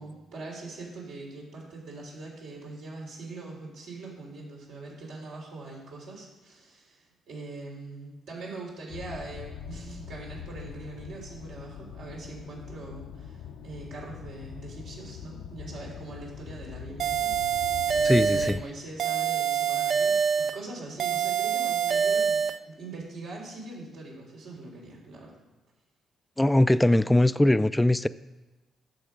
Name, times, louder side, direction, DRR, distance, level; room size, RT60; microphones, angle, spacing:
voice 1, 0.0-25.3, right 2 dB, 80° right, -3 dB, 3.4 m, -42 dB
sound 1, 8.9-18.6, left 8 dB, 80° left, 0.6 m, -42 dB
sound 2, 17.0-18.6 19.0-20.6 21.0-22.6, right 7 dB, 60° right, 0.4 m, -25 dB
voice 2, 18.0-18.6 26.4-28.1, left 1 dB, 10° left, 15 dB, 0.3 m, -21 dB
10.5 x 6.9 x 5.0 m, 1.2 s
cardioid pair, 90°, 0 cm